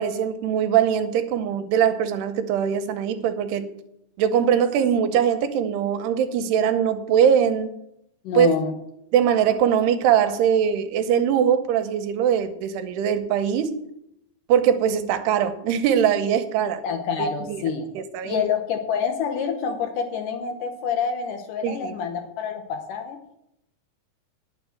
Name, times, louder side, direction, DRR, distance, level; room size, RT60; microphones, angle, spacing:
voice 1, 0.0-3.7 4.2-7.7 8.3-8.5 9.1-13.8 14.5-16.8 17.2-17.6 18.0-18.4 21.6-21.9, right 8 dB, 85° right, 8 dB, 2.8 m, -21 dB
voice 2, 8.2-8.7 16.6-17.9 18.2-23.2, left 6 dB, 70° left, 5 dB, 2.2 m, -27 dB
9.8 x 7.1 x 7.6 m, 0.79 s
omnidirectional pair, 4.7 m